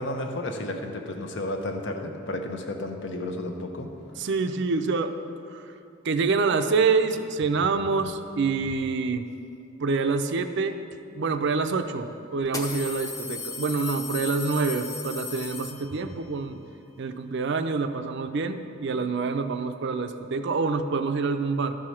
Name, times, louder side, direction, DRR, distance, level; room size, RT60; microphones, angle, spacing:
voice 1, 0.0-3.9, left 1 dB, 65° left, 4 dB, 0.9 m, -32 dB
voice 2, 4.2-5.1 5.5-5.8 6.0-9.3 9.8-10.8 11.1-16.6 17.0-21.8, right 4 dB, 60° right, 8 dB, 0.5 m, -26 dB
sound 1, 11.3-11.4 12.4-16.2, left 4 dB, 15° left, 0.8 m, -36 dB
12.5 x 4.8 x 5.8 m, 2.6 s
head